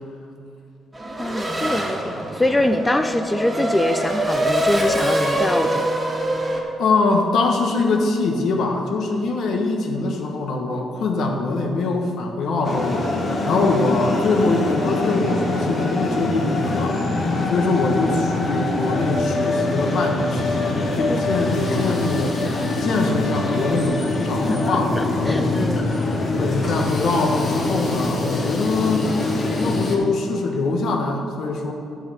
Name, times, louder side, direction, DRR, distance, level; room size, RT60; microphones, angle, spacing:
Race car auto racing / Accelerating revving vroom, 0.9-6.6, right 1 dB, 15° right, 1.6 m, -24 dB
voice 1, 1.2-5.9 21.1-21.4 24.5-25.9, left 1 dB, 15° left, 7 dB, 0.4 m, -24 dB
voice 2, 6.8-17.0 17.5-25.6 26.4-29.1 29.6-31.7, left 3 dB, 70° left, 2 dB, 1.3 m, -23 dB
sound 1, 12.6-30.0, left 2 dB, 45° left, 1.4 m, -24 dB
9.8 x 7.1 x 5.0 m, 2.6 s
cardioid pair, 90°, 0 cm